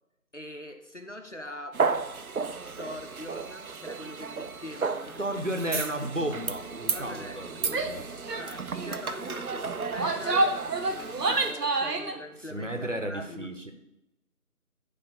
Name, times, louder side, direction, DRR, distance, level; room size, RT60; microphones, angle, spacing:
voice 1, 0.3-1.9 2.8-5.9 6.9-10.5 10.8-13.5, left 1 dB, 50° left, 5 dB, 0.7 m, -43 dB
sound 1, 1.7-11.5, right 5 dB, 65° right, 0.6 m, -34 dB
voice 2, 5.2-8.0 12.5-13.7, right 1 dB, 50° right, 5 dB, 0.9 m, -33 dB
Female speech woman speaking / Yell, 7.7-8.0 8.3-8.5 8.7-9.1 9.8-12.2, right 2 dB, 85° right, 1.0 m, -28 dB
10.0 x 3.4 x 5.6 m, 0.89 s
figure-of-eight pair, 180°, 47 cm